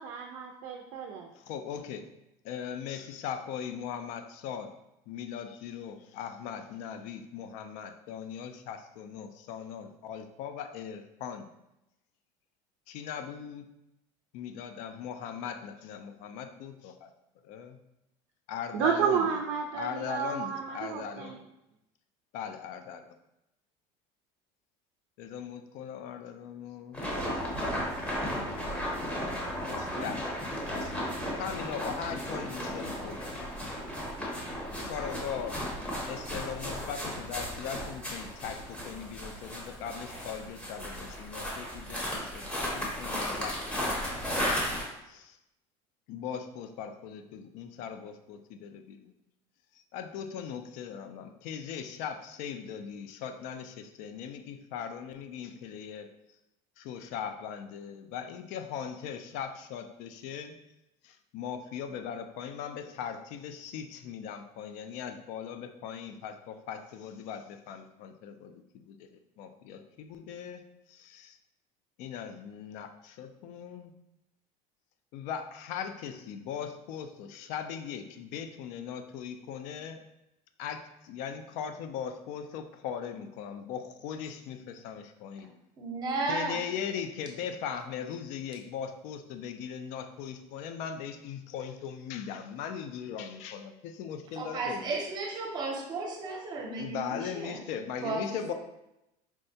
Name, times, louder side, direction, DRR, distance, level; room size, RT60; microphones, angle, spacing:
voice 1, 0.0-1.3 18.7-21.4, right 7 dB, 70° right, 2 dB, 0.4 m, -31 dB
voice 2, 1.3-2.1 2.4-4.7 5.1-11.5 12.9-13.7 14.3-17.1 17.4-17.8 18.5-19.4 19.8-21.3 22.3-23.0 25.2-27.0 27.5-27.6 29.6-30.5 30.8-31.0 31.4-33.5 34.8-35.6 36.1-44.4 45.1-45.4 46.1-49.1 49.7-56.1 56.8-60.6 61.0-69.1 69.4-71.4 72.0-73.9 75.1-80.0 80.6-85.5 86.3-95.0 96.8-98.5, left 8 dB, 60° left, 8 dB, 0.4 m, -39 dB
sound 1, 26.9-44.8, equal, 10° left, 0.7 m, -35 dB
voice 3, 85.8-86.6 94.4-97.6 98.0-98.5, right 3 dB, 30° right, 0 dB, 0.6 m, -34 dB
4.5 x 2.1 x 2.6 m, 0.89 s
cardioid pair, 165°, 14 cm